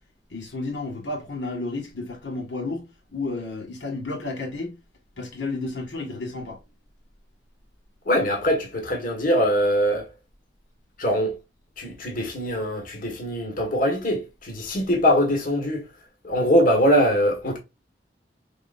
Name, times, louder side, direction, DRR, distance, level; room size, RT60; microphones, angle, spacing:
voice 1, 0.3-4.8 5.2-6.6, left 3 dB, 70° left, 1.6 m, -32 dB
voice 2, 8.0-10.1 11.0-11.3 11.8-15.8 16.2-17.6, equal, 50° left, 1.5 m, -22 dB
4.9 x 3.8 x 2.5 m
head